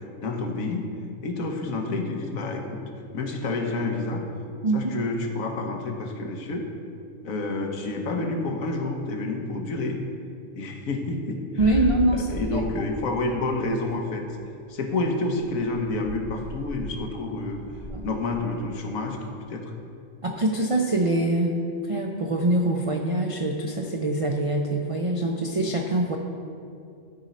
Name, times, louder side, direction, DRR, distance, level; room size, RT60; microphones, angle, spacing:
voice 1, 0.2-0.9 1.2-2.8 3.1-4.2 4.7-6.7 7.2-10.0 10.5-11.8 12.1-14.2 14.7-17.6 18.0-19.2 19.5-19.7, left 2 dB, 90° left, 3 dB, 1.4 m, -29 dB
sound 1, 11.6-13.5 13.8-14.0 14.5-14.6 14.9-15.0 15.3-18.4, left 1 dB, 5° left, 0.5 m, -36 dB
voice 2, 11.6-12.6 17.9-18.1 20.2-21.5 21.9-26.2, right 2 dB, 65° right, 1 dB, 0.3 m, -24 dB
12.0 x 4.2 x 5.1 m, 2.5 s
omnidirectional pair, 1.4 m